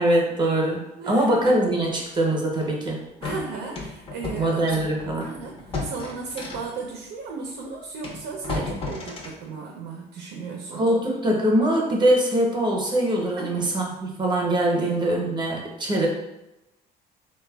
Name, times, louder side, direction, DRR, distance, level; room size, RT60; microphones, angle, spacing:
voice 1, 0.0-3.1 4.4-5.3 10.7-16.1, right 1 dB, 25° right, -1 dB, 0.7 m, -23 dB
voice 2, 1.0-1.4 3.2-4.7 5.2-10.9 13.4-13.7 14.7-15.0, right 4 dB, 80° right, 0 dB, 0.5 m, -35 dB
sound 1, 1.4-1.6 2.6-2.7 3.2-6.8 7.5-7.6 8.0-9.4, left 3 dB, 35° left, 0.5 m, -34 dB
3.2 x 2.2 x 2.2 m, 0.94 s
cardioid pair, 110°, 17 cm